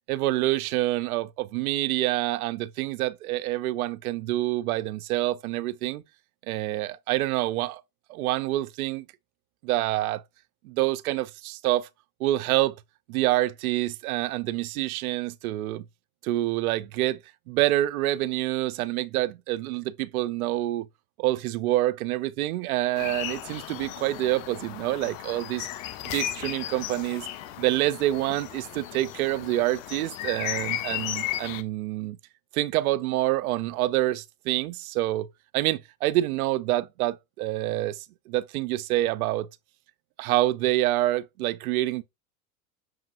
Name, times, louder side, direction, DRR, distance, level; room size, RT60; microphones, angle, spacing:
voice 1, 0.1-6.0 6.5-7.8 8.1-9.0 9.6-10.2 10.6-11.9 12.2-12.8 13.1-15.9 16.2-17.2 17.5-20.9 21.2-25.7 26.1-27.3 27.6-32.2 32.5-35.3 35.5-39.5 40.2-42.0, right 16 dB, 75° right, 0.5 m, -27 dB
sound 1, 23.0-31.6, left 13 dB, 60° left, 0.6 m, -35 dB
6.1 x 2.5 x 2.4 m
hypercardioid pair, 95°, 44 cm